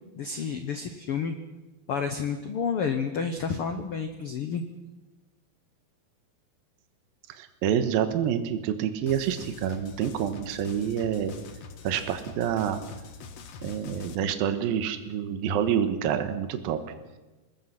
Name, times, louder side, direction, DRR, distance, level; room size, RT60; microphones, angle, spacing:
voice 1, 0.2-1.4 1.9-4.6, left 6 dB, 80° left, 7 dB, 1.2 m, -30 dB
voice 2, 7.4-11.3 11.8-12.8 13.6-16.8, right 9 dB, 75° right, 9 dB, 3.0 m, -27 dB
sound 1, 9.1-14.1, left 5 dB, 55° left, 2.1 m, -44 dB
26.5 x 20.0 x 5.8 m, 1.1 s
omnidirectional pair, 4.3 m